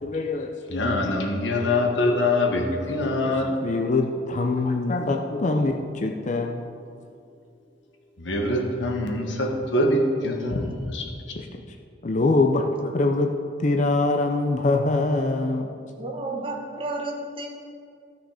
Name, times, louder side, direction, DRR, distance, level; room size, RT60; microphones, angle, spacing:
voice 1, 0.0-0.9 1.5-1.7 2.9-6.6 11.4-11.5 12.0-13.3 13.6-15.7, left 2 dB, 40° left, 4 dB, 0.5 m, -24 dB
voice 2, 0.7-3.7 8.2-11.4, left 1 dB, 65° left, 2 dB, 1.3 m, -24 dB
voice 3, 16.0-17.5, right 2 dB, 25° right, -1 dB, 1.3 m, -31 dB
13.0 x 6.3 x 4.9 m, 2.4 s
head